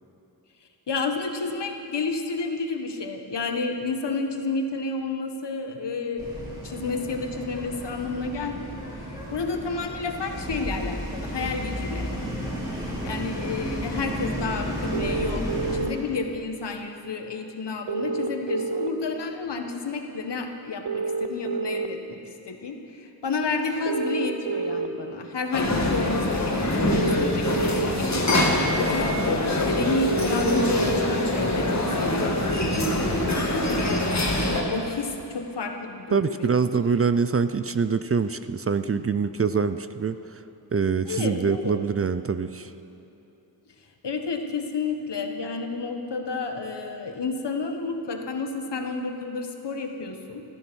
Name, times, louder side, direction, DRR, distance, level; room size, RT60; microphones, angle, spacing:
voice 1, 0.9-8.7 9.1-28.4 28.8-32.5 33.0-34.0 34.7-36.6 41.1-41.8 44.0-50.4, left 4 dB, 80° left, 4 dB, 1.4 m, -31 dB
sound 1, 6.2-15.8, equal, 10° right, 4.3 m, -32 dB
sound 2, 14.9-15.9 17.9-18.9 20.8-21.9 23.8-24.9 26.8-27.9 29.8-30.9, right 4 dB, 85° right, 0.8 m, -28 dB
sound 3, 25.5-34.6, left 1 dB, 40° left, 2.0 m, -24 dB
voice 2, 36.1-40.4 40.7-42.7, right 5 dB, 35° right, 12 dB, 0.4 m, -24 dB
15.0 x 13.5 x 6.2 m, 2.8 s
wide cardioid pair, 120°, 41 cm